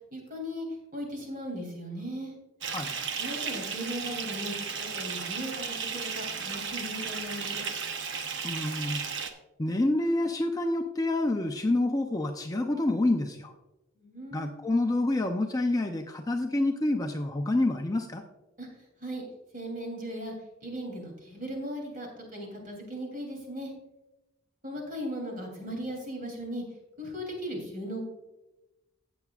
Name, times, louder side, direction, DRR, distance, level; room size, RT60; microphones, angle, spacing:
voice 1, 0.1-0.7 0.9-2.3 3.2-7.6 14.0-14.6 18.6-18.7 19.0-19.2 19.5-20.3 20.6-23.7 24.6-26.6 27.0-28.0, equal, 40° right, 1 dB, 3.2 m, -37 dB
Bathtub (filling or washing) / Fill (with liquid), 2.6-9.3, right 6 dB, 60° right, 0.9 m, -34 dB
voice 2, 8.4-9.0 9.6-13.5 14.3-18.2, left 2 dB, 15° left, 4 dB, 0.5 m, -28 dB
17.0 x 7.1 x 2.4 m, 0.99 s
head